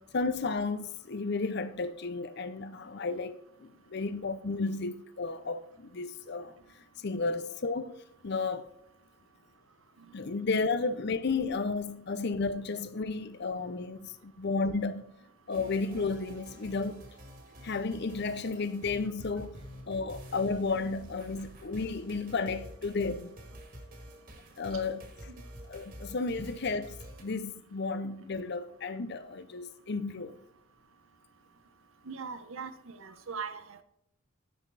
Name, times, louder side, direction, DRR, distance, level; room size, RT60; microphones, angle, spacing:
voice 1, 0.1-6.5 7.0-7.9 8.2-8.7 10.1-15.1 15.5-17.1 17.6-19.6 19.9-23.3 24.6-25.1 25.7-30.3, left 4 dB, 55° left, 0.7 m, -33 dB
sound 1, 15.5-27.2, equal, 45° right, 2.0 m, -48 dB
voice 2, 32.0-33.8, right 5 dB, 70° right, 0.9 m, -41 dB
10.0 x 6.6 x 4.1 m
head